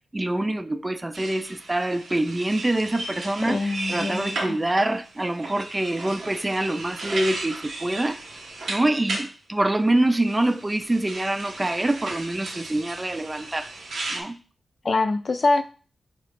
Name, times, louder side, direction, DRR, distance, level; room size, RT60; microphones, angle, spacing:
voice 1, 0.1-8.2 8.7-13.7 14.1-14.4, right 1 dB, 25° right, 0.4 m, -25 dB
sound 1, 1.1-9.3 10.1-14.2, right 2 dB, 80° right, 0.8 m, -35 dB
voice 2, 3.4-4.5 14.8-15.6, left 3 dB, 55° left, 0.5 m, -24 dB
4.1 x 3.7 x 3.4 m
cardioid pair, 45°, 0 cm